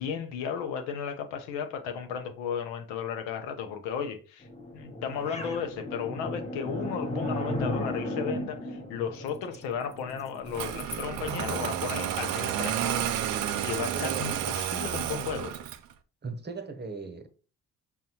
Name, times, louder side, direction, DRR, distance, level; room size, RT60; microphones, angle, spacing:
voice 1, 0.0-4.5 4.7-13.1 13.6-15.5, left 7 dB, 80° left, 0.7 m, -34 dB
sound 1, 4.4-11.5, left 1 dB, 15° left, 1.0 m, -35 dB
Engine starting, 10.5-15.9, right 10 dB, 65° right, 0.6 m, -31 dB
voice 2, 13.9-14.4 16.2-17.3, right 4 dB, 25° right, 0.9 m, -38 dB
5.6 x 2.2 x 2.9 m
hypercardioid pair, 45°, 39 cm